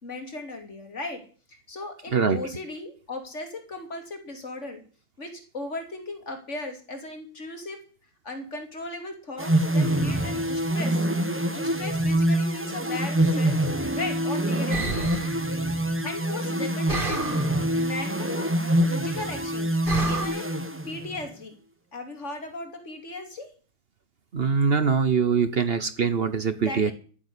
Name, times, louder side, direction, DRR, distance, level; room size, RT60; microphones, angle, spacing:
voice 1, 0.0-1.2 1.5-4.8 5.2-7.8 8.2-11.0 11.5-15.2 16.0-18.5 18.9-19.8 20.0-20.5 20.8-21.5 21.9-23.5 26.6-26.9, left 2 dB, 40° left, 5 dB, 3.0 m, -37 dB
voice 2, 2.1-2.4 24.3-26.9, right 5 dB, 45° right, 13 dB, 0.9 m, -23 dB
sound 1, 9.4-21.3, right 1 dB, 10° right, 0.7 m, -25 dB
sound 2, 14.7-15.4 16.9-17.6 19.9-20.3, right 3 dB, 30° right, 2.5 m, -29 dB
14.5 x 7.2 x 9.9 m, 0.40 s
omnidirectional pair, 2.0 m